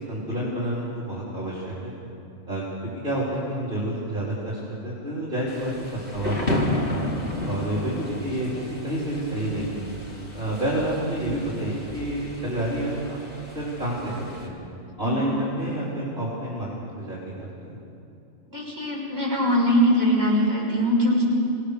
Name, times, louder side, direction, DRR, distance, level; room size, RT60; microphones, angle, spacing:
voice 1, 0.0-1.9 2.5-2.6 3.0-6.9 7.4-8.5 8.8-9.8 10.3-13.2 13.5-14.6 15.0-16.7 17.0-17.7, right 1 dB, 40° right, -6 dB, 4.1 m, -29 dB
Thunder / Rain, 5.5-14.5, left 1 dB, 40° left, 3.0 m, -32 dB
voice 2, 18.5-21.2, equal, 15° right, -5 dB, 6.8 m, -21 dB
26.0 x 19.0 x 6.7 m, 2.7 s
omnidirectional pair, 1.4 m